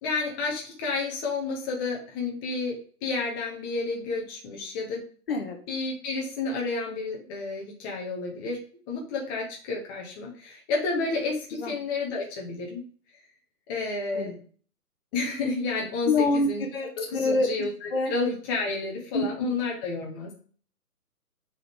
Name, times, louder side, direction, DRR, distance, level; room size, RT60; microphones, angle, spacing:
voice 1, 0.0-5.0 5.7-12.8 13.7-14.3 15.1-16.6 17.0-20.3, left 3 dB, 15° left, -2 dB, 1.1 m, -31 dB
voice 2, 16.1-17.5 17.9-18.1 19.1-19.6, left 3 dB, 40° left, 3 dB, 1.1 m, -26 dB
7.2 x 4.0 x 3.5 m, 0.43 s
figure-of-eight pair, 135°, 46 cm